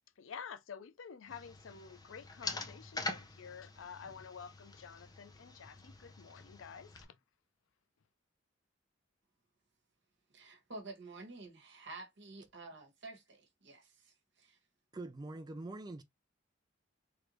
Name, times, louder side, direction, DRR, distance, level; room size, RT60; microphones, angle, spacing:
voice 1, 0.2-7.2, left 6 dB, 80° left, 0.4 m, -50 dB
sound 1, 1.3-7.0, left 2 dB, 20° left, 0.6 m, -45 dB
voice 2, 10.3-14.6, right 2 dB, 65° right, 1.1 m, -50 dB
voice 3, 14.9-16.0, right 2 dB, 20° right, 0.4 m, -44 dB
3.3 x 2.6 x 2.9 m
head